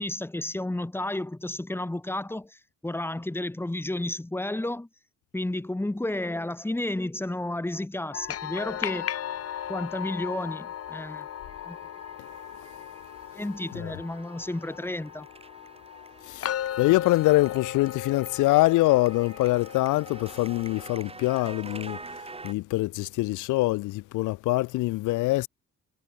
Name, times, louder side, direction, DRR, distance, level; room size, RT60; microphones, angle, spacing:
voice 1, 0.0-4.9 5.3-9.1 9.7-11.3 11.6-11.8 13.3-15.3, left 1 dB, 10° left, 1.2 m, -32 dB
sound 1, 8.1-20.9, left 10 dB, 50° left, 0.9 m, -37 dB
sound 2, 8.3-22.5, right 3 dB, 20° right, 2.4 m, -48 dB
voice 2, 16.3-22.0 22.4-25.5, left 19 dB, 85° left, 0.5 m, -24 dB
cardioid pair, 90°, 30 cm